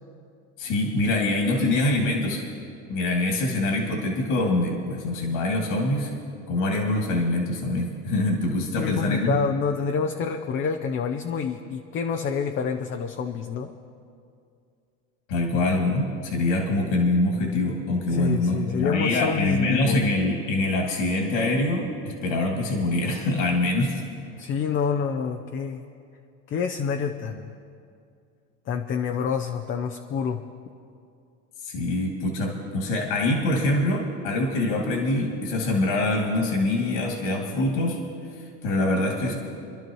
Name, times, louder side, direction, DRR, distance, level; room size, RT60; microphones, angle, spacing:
voice 1, 0.6-2.4 2.9-6.1 6.5-9.4 15.3-24.0 31.6-38.0 38.3-39.4, left 2 dB, 70° left, 0 dB, 2.6 m, -24 dB
voice 2, 8.7-13.7 18.1-20.0 24.4-25.8 26.5-27.5 28.7-30.4, left 6 dB, 35° left, 4 dB, 0.7 m, -27 dB
27.0 x 11.5 x 3.1 m, 2.4 s
supercardioid pair, 120°, 35 cm